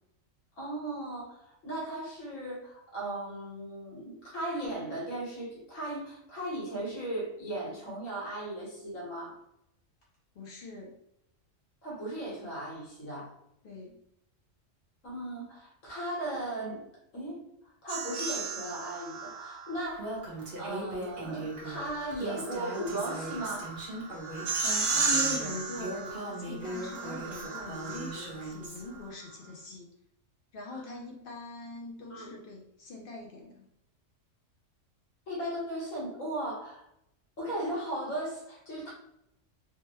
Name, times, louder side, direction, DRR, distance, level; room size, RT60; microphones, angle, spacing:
voice 1, 0.6-9.4 11.8-13.3 15.0-16.8 17.1-17.4 17.8-20.2 20.6-23.7 30.7-30.8 32.1-32.4 35.3-36.8 37.4-38.9, right 1 dB, 85° left, -5 dB, 1.6 m, -37 dB
voice 2, 10.3-10.9 13.6-14.0 24.9-29.9 30.5-33.6, left 1 dB, 55° left, -1 dB, 0.7 m, -42 dB
sound 1, 17.9-19.8 21.3-28.5, right 4 dB, 85° right, 1.0 m, -34 dB
Female speech woman speaking, 20.0-28.8, right 2 dB, 45° right, 1.0 m, -39 dB
3.3 x 2.1 x 3.0 m, 0.79 s
omnidirectional pair, 1.3 m